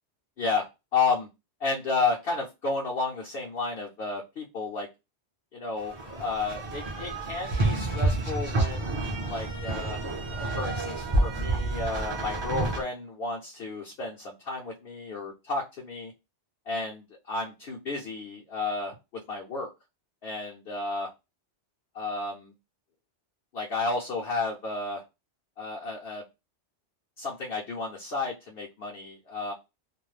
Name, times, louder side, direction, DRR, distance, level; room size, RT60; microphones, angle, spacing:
voice 1, 0.4-1.3 1.6-4.9 5.5-10.0 10.3-16.1 16.7-19.0 19.3-19.7 20.2-21.1 22.0-22.5 23.5-25.0 25.6-26.2 27.2-29.5, left 3 dB, 60° left, -3 dB, 0.9 m, -32 dB
sound 1, 5.8-12.8, right 2 dB, 30° right, 0.6 m, -29 dB
2.5 x 2.1 x 3.1 m, 0.24 s
omnidirectional pair, 1.2 m